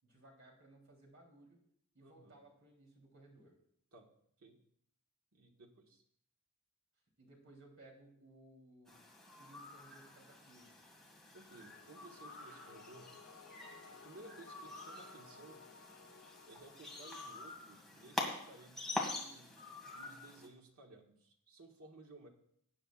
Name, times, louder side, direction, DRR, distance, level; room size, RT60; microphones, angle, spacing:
voice 1, 0.0-1.6 1.9-3.5 7.2-9.0 9.3-10.8, right 2 dB, 60° right, 0 dB, 3.3 m, -61 dB
voice 2, 2.0-2.4 3.9-4.1 4.4-4.6 5.3-6.0 11.3-13.1 13.9-15.6 16.4-19.5 19.9-22.3, right 2 dB, 85° right, 1 dB, 1.6 m, -57 dB
sound 1, 8.9-20.5, left 2 dB, ahead, 1.8 m, -46 dB
sound 2, 11.5-17.5, left 4 dB, 80° left, 0.9 m, -58 dB
18.5 x 9.2 x 2.4 m, 0.70 s
head